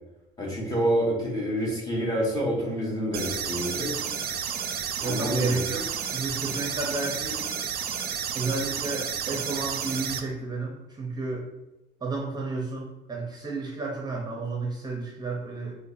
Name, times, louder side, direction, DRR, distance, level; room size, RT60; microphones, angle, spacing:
voice 1, 0.4-3.9 5.0-5.6, equal, 20° left, -3 dB, 1.3 m, -27 dB
sound 1, 3.1-10.2, right 7 dB, 65° right, 0.5 m, -31 dB
voice 2, 5.0-7.4 8.3-11.5 12.0-15.7, right 3 dB, 25° right, -1 dB, 0.6 m, -32 dB
4.9 x 2.1 x 2.6 m, 1.0 s
cardioid pair, 110°, 17 cm